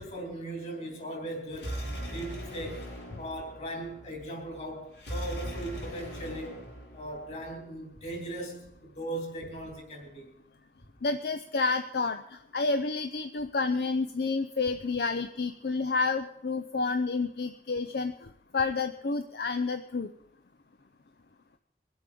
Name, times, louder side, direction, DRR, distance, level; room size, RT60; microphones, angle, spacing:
voice 1, 0.0-2.9 3.2-6.6 6.9-10.3, right 1 dB, 40° left, 2 dB, 3.5 m, -39 dB
sound 1, 1.5-7.5, equal, 80° left, 4.6 m, -40 dB
voice 2, 11.0-20.1, left 4 dB, 65° left, 8 dB, 0.6 m, -30 dB
23.0 x 8.0 x 5.3 m, 0.75 s
head